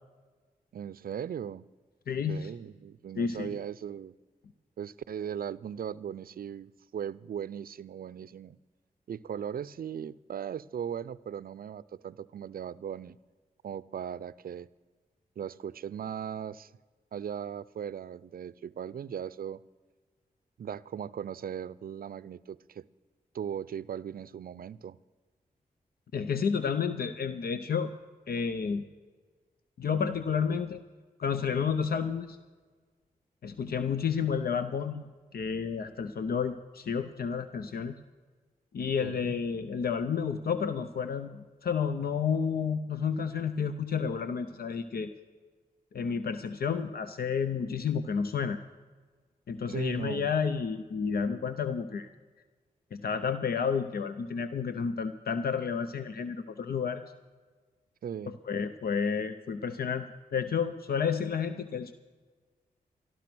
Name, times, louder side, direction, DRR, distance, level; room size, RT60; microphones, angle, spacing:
voice 1, 0.7-1.6 2.2-4.1 4.8-8.6 9.1-13.2 13.6-14.7 15.4-16.7 17.1-19.6 20.6-22.8 23.3-25.0 39.0-39.4 49.7-50.3 58.0-58.4, right 8 dB, 70° right, 19 dB, 0.4 m, -38 dB
voice 2, 2.1-2.5 3.2-3.5 26.1-27.9 28.3-28.8 29.8-30.8 31.2-32.4 33.4-35.0 35.3-37.9 38.7-45.1 45.9-48.6 49.5-52.1 52.9-57.1 58.3-60.1 60.3-61.9, left 6 dB, 75° left, 10 dB, 0.6 m, -31 dB
13.5 x 12.5 x 6.0 m, 1.4 s
cardioid pair, 45°, 16 cm